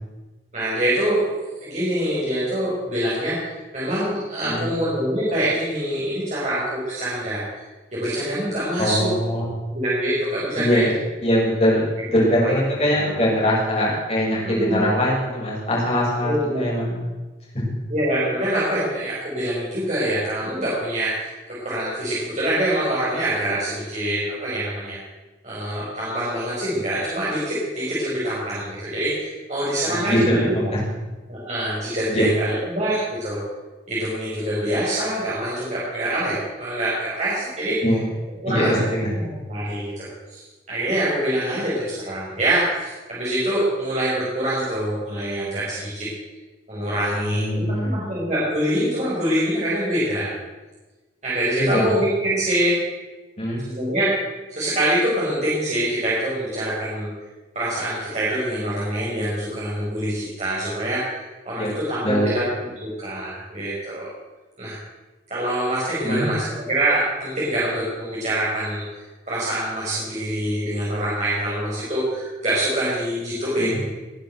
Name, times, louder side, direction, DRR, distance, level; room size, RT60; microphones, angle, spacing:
voice 1, 0.5-7.4 7.9-9.1 9.4-10.8 12.1-12.2 13.0-13.1 14.4-14.9 16.2-16.7 17.9-25.0 25.4-30.5 31.3-33.4 33.9-37.8 38.4-38.8 39.2-46.1 46.7-50.3 51.2-52.8 53.6-54.1 54.5-57.1 57.5-62.4 62.8-64.1 64.6-64.8 65.3-68.8 69.3-73.9, right 1 dB, 40° right, -9 dB, 5.2 m, -25 dB
voice 2, 8.8-9.5 10.6-10.9 11.2-17.0 17.5-17.7 29.9-30.8 32.1-32.3 37.8-38.1 38.4-39.1 47.1-48.0 51.6-51.9 53.4-53.6 61.6-61.7 62.0-62.3 66.0-66.3 73.6-73.9, equal, 35° left, -5 dB, 6.8 m, -22 dB
20.5 x 8.0 x 7.8 m, 1.2 s
head